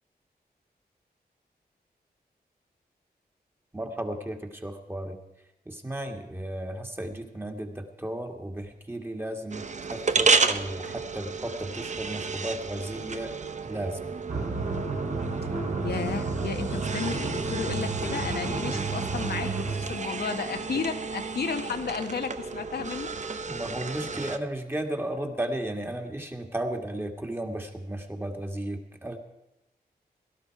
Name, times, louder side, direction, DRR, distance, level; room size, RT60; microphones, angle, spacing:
voice 1, 3.7-5.2 5.7-9.7 9.9-13.3 13.6-14.1 23.5-29.2, right 1 dB, 15° right, 3 dB, 1.8 m, -34 dB
sound 1, 9.5-24.4, right 4 dB, 45° right, 0.8 m, -31 dB
sound 2, 14.3-20.0, right 3 dB, 70° right, 3.0 m, -31 dB
voice 2, 15.8-23.1, left 5 dB, 75° left, 6 dB, 1.1 m, -33 dB
17.5 x 12.5 x 4.6 m, 0.91 s
wide cardioid pair, 80°, 17 cm